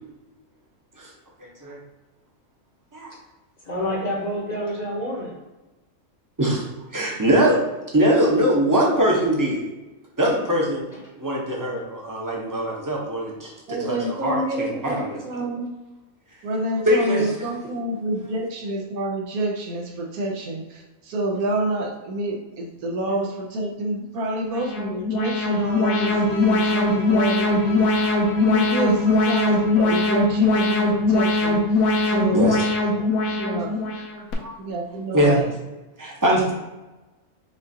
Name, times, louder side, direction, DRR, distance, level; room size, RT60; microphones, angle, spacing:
voice 1, 1.4-1.8 2.9-3.1 6.4-6.7 6.9-7.6 7.9-9.6 10.2-10.8 11.2-15.2 16.9-17.5 32.3-32.6 33.8-33.9 34.4-34.5 35.1-35.4 36.0-36.5, equal, 20° right, -3 dB, 0.6 m, -22 dB
voice 2, 3.6-5.4 10.9-11.0 36.4-36.5, equal, 35° left, -4 dB, 0.8 m, -28 dB
voice 3, 13.7-15.7 16.4-31.6 32.1-32.4 32.9-33.1 33.4-33.7 34.6-35.5, right 1 dB, 85° right, -1 dB, 1.2 m, -28 dB
Alarm, 24.5-34.3, left 2 dB, 75° left, 1.1 m, -21 dB
Bowed string instrument, 25.4-30.6, left 3 dB, 60° left, 1.3 m, -37 dB
5.5 x 2.4 x 2.8 m, 1.1 s
omnidirectional pair, 1.5 m